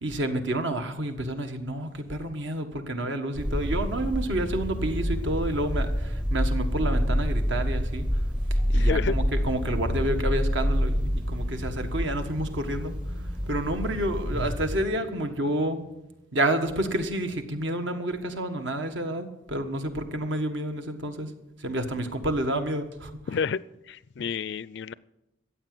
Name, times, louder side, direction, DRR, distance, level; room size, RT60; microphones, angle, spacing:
voice 1, 0.0-8.0 8.7-12.9 13.5-15.8 16.3-21.3 21.6-23.1, right 1 dB, 65° right, 1.5 m, -29 dB
sound 1, 3.3-14.8, equal, 5° right, 0.6 m, -27 dB
voice 2, 8.7-9.2 23.3-23.6 23.9-24.9, left 5 dB, 55° left, 0.4 m, -30 dB
sound 2, 9.6-15.6, left 1 dB, 80° right, 1.9 m, -40 dB
15.0 x 8.3 x 7.7 m
head